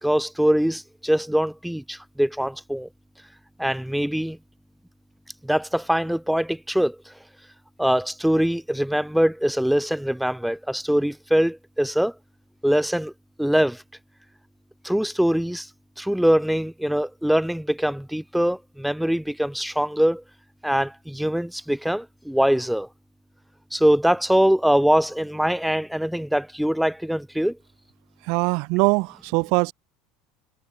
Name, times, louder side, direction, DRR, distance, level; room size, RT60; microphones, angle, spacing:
voice 1, 0.0-2.9 3.6-4.4 5.4-7.1 7.8-12.1 12.6-13.1 13.4-13.8 14.8-15.7 16.0-20.2 20.6-22.9 23.7-27.6, equal, ahead, 2.3 m, -23 dB
voice 2, 28.2-29.7, right 31 dB, 65° right, 2.2 m, -22 dB
supercardioid pair, 110°, 0 cm